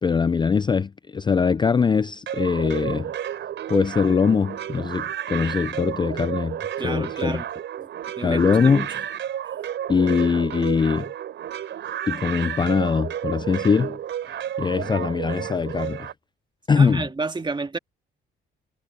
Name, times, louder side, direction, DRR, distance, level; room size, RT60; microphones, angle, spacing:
voice 1, 0.0-3.1 3.7-7.4 8.2-8.9 9.9-11.1 12.1-14.0 14.3-16.1 16.7-17.1, left 5 dB, 25° left, 0.4 m, -22 dB
sound 1, 2.3-16.1, right 10 dB, 70° right, 3.8 m, -32 dB
voice 2, 6.8-7.5 7.8-7.9 8.2-8.9 16.8-17.8, right 3 dB, 25° right, 2.0 m, -30 dB
cardioid pair, 90°, 20 cm